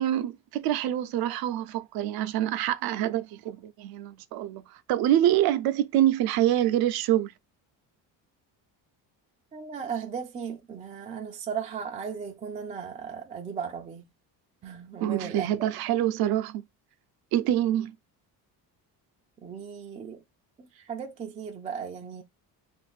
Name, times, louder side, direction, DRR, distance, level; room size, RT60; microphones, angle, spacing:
voice 1, 0.0-7.3 15.0-16.6 17.3-17.9, right 12 dB, 65° right, 0.6 m, -26 dB
voice 2, 9.5-14.0 14.6-15.5 19.4-20.2 20.6-22.2, right 7 dB, 20° right, 0.3 m, -36 dB
2.6 x 2.5 x 4.0 m
cardioid pair, 145°, 39 cm